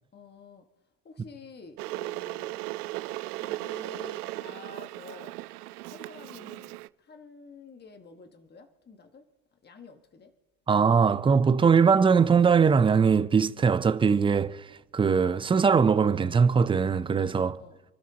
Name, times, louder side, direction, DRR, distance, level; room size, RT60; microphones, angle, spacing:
voice 1, 0.1-0.6 1.0-2.6 3.3-5.3 5.8-9.2 9.6-10.3 17.4-17.8, left 4 dB, 20° left, 1.6 m, -49 dB
Water / Boiling, 1.8-6.9, right 18 dB, 75° right, 0.6 m, -37 dB
voice 2, 10.7-17.6, right 6 dB, 10° right, 0.5 m, -21 dB
28.5 x 12.5 x 2.9 m
hypercardioid pair, 90°, 46 cm